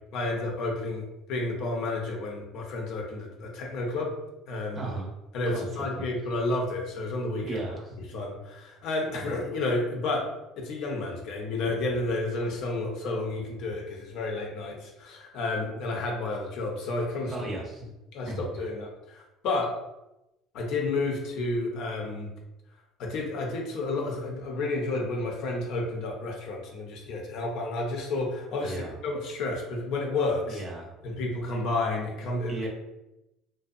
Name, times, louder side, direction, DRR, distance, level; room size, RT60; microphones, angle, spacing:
voice 1, 0.1-4.1 4.5-4.8 5.3-7.6 8.1-10.3 10.6-17.3 18.1-19.7 20.5-22.3 23.0-30.6 31.0-32.6, left 2 dB, 65° left, 1 dB, 0.6 m, -31 dB
voice 2, 4.7-5.1 5.5-6.1 7.4-7.9 9.1-9.3 17.3-17.8 18.3-18.6 28.6-29.0 30.5-30.9 32.5-32.7, right 2 dB, 40° right, 0 dB, 0.6 m, -36 dB
2.6 x 2.1 x 2.4 m, 0.93 s
supercardioid pair, 90°, 0 cm